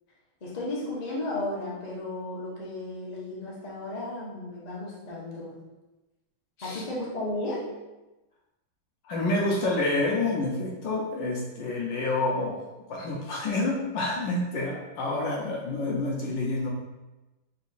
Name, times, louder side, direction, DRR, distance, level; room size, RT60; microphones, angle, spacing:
voice 1, 0.4-5.5 6.6-7.7, left 2 dB, 45° left, -6 dB, 0.5 m, -34 dB
voice 2, 9.1-12.6 12.9-16.7, left 2 dB, 70° left, -2 dB, 1.2 m, -28 dB
4.0 x 2.7 x 4.0 m, 1.1 s
omnidirectional pair, 2.4 m